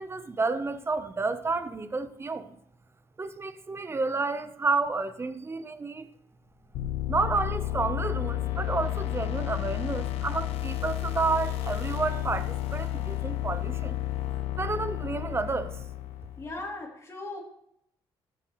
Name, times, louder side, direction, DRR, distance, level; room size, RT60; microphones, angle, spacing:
voice 1, 0.0-2.5 3.2-6.1 7.1-14.0 14.6-15.8, right 3 dB, 25° right, 0.8 m, -30 dB
sound 1, 6.4-12.0, left 3 dB, 50° left, 1.6 m, -51 dB
sound 2, 6.7-16.6, left 14 dB, 85° left, 0.6 m, -32 dB
voice 2, 16.4-17.4, left 2 dB, 30° left, 2.9 m, -38 dB
13.5 x 7.3 x 3.1 m
cardioid pair, 85°, 10 cm